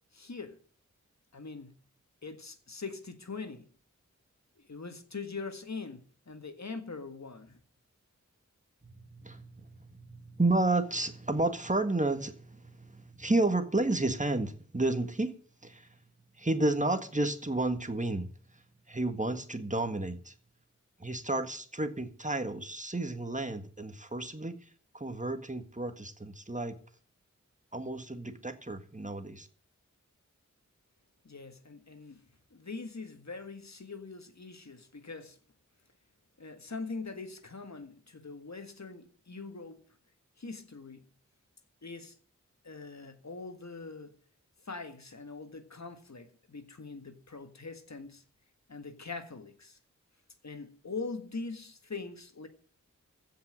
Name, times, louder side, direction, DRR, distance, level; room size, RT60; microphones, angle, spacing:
voice 1, 0.1-0.6 1.3-1.8 2.2-3.7 4.7-7.6 31.3-32.3 32.5-35.4 36.4-39.8 40.4-41.1 41.8-42.2 42.6-44.2 44.7-48.2 48.7-49.8 50.4-52.5, left 4 dB, 65° left, 1.8 m, -42 dB
voice 2, 8.8-15.4 15.6-15.9 16.4-18.3 18.9-20.3 21.0-24.6 24.9-26.8 27.7-29.5, right 2 dB, 25° right, 1.8 m, -31 dB
15.5 x 5.8 x 8.9 m
wide cardioid pair, 55°, 30 cm